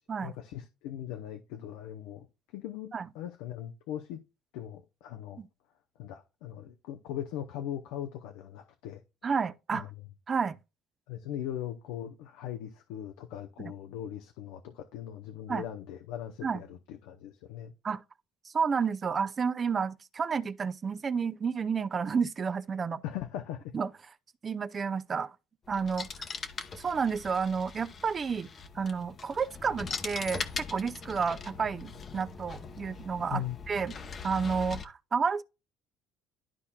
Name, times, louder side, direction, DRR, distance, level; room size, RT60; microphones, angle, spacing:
voice 1, 0.2-2.3 2.5-4.2 4.5-5.4 6.0-9.0 9.7-9.9 11.1-17.7 23.0-23.8 33.3-33.6, left 11 dB, 85° left, 0.7 m, -39 dB
voice 2, 9.2-9.8 10.3-10.6 13.6-13.7 15.5-15.6 16.4-16.6 17.8-18.0 18.5-23.0 23.7-23.9 24.4-25.4 25.7-26.1 26.8-28.5 28.7-33.9 34.2-35.4, right 6 dB, 30° right, 0.5 m, -31 dB
sound 1, 25.6-34.9, left 5 dB, 35° left, 0.8 m, -41 dB
12.0 x 4.2 x 2.3 m
cardioid pair, 110°, 0 cm